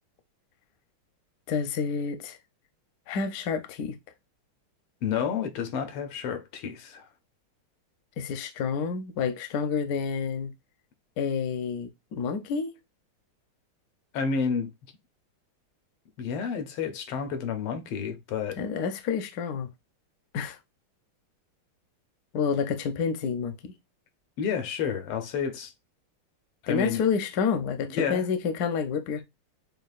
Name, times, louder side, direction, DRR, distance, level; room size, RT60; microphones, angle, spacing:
voice 1, 1.5-2.4 3.1-3.9 8.2-10.5 11.2-12.7 18.6-19.7 20.3-20.6 22.3-23.7 26.7-29.2, left 6 dB, 70° left, 0.9 m, -29 dB
voice 2, 5.0-7.0 14.1-14.7 16.2-18.6 24.4-25.7 26.6-27.0 28.0-28.2, left 6 dB, 90° left, 1.7 m, -30 dB
6.5 x 2.3 x 2.4 m
omnidirectional pair, 2.4 m